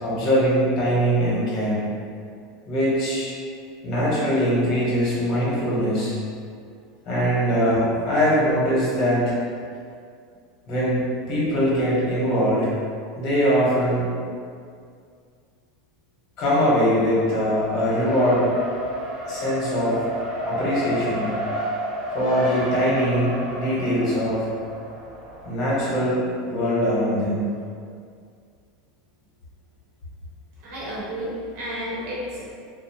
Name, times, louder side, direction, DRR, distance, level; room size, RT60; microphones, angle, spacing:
voice 1, 0.0-1.8 2.7-3.3 3.8-6.1 7.1-9.4 10.7-12.7 13.2-14.1 16.4-18.4 19.3-20.1 20.4-21.3 22.1-24.4 25.4-27.4, equal, 45° left, -7 dB, 1.0 m, -22 dB
Race car auto racing, 16.9-25.8, equal, 85° right, 0.8 m, -32 dB
voice 2, 30.6-32.5, equal, 55° right, -7 dB, 0.8 m, -31 dB
2.6 x 2.0 x 2.8 m, 2.2 s
supercardioid pair, 135°, 0 cm